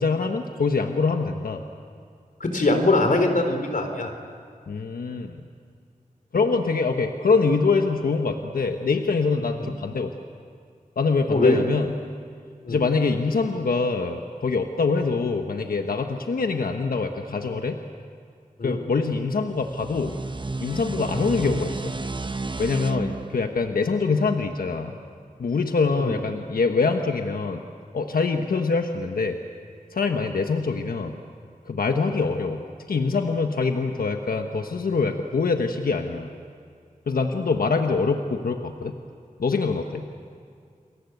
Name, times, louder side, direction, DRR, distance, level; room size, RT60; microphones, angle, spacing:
voice 1, 0.0-1.6 4.7-5.4 6.3-10.1 11.0-11.9 12.7-17.8 18.6-20.1 20.6-21.8 22.6-24.9 25.4-27.6 27.9-29.4 29.9-31.1 31.7-32.6 32.9-36.3 37.1-39.0 39.4-40.0, left 4 dB, 85° left, 5 dB, 1.3 m, -24 dB
voice 2, 2.4-4.1 9.6-9.7 11.3-11.6 12.6-12.8 18.6-18.8 26.0-26.2, left 2 dB, 65° left, 5 dB, 3.8 m, -22 dB
sound 1, 19.5-24.8, right 3 dB, 35° right, 0.9 m, -33 dB
29.5 x 22.0 x 8.1 m, 2.2 s
wide cardioid pair, 55°, 15 cm